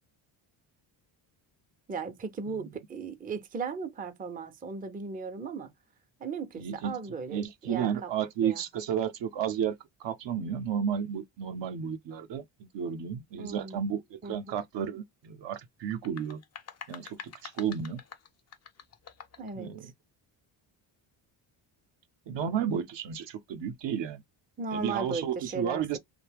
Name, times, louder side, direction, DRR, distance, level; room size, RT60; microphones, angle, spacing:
voice 1, 1.9-5.7 6.2-8.1 8.4-8.6 13.4-13.9 14.2-14.6 19.4-19.9 24.6-26.0, right 4 dB, 20° right, 0.5 m, -37 dB
voice 2, 6.6-7.0 7.3-9.8 10.0-16.4 16.9-18.0 19.5-19.9 22.3-24.2 24.7-26.0, right 8 dB, 60° right, 0.6 m, -32 dB
sound 1, 15.9-19.5, left 7 dB, 35° left, 0.5 m, -47 dB
2.7 x 2.1 x 3.3 m
cardioid pair, 75°, 48 cm